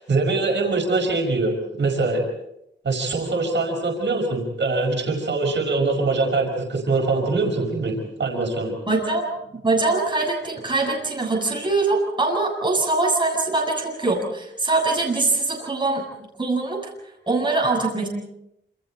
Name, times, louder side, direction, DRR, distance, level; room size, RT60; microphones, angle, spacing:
voice 1, 0.0-2.2 2.8-8.7, right 3 dB, 75° right, 1 dB, 5.2 m, -23 dB
voice 2, 8.9-9.3 9.6-16.0 16.4-16.8 17.3-18.1, right 3 dB, 25° right, -1 dB, 7.5 m, -22 dB
28.0 x 28.0 x 4.4 m, 0.83 s
wide cardioid pair, 150°, 19 cm